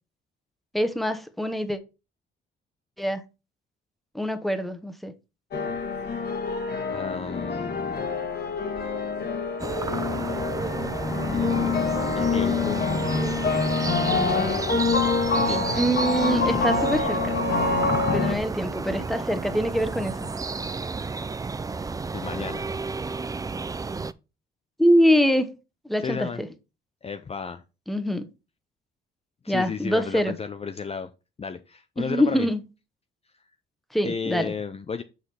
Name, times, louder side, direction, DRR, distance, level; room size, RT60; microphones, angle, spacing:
voice 1, 0.7-1.8 3.0-3.2 4.1-5.1 11.4-11.7 15.7-17.4 18.1-20.1 24.8-25.5 25.8-26.5 27.9-28.3 29.5-30.3 32.0-32.6 33.9-34.5, equal, ahead, 1.1 m, -24 dB
sound 1, 5.5-18.3, left 4 dB, 55° left, 1.6 m, -26 dB
voice 2, 6.9-8.1 11.3-12.9 15.4-15.8 17.8-18.3 22.1-22.7 26.0-26.4 27.0-27.6 29.4-31.1 31.4-32.5 34.0-35.0, left 5 dB, 30° left, 0.6 m, -33 dB
sound 2, 9.6-24.1, right 4 dB, 20° right, 0.4 m, -31 dB
6.4 x 5.0 x 5.7 m
cardioid pair, 90°, 20 cm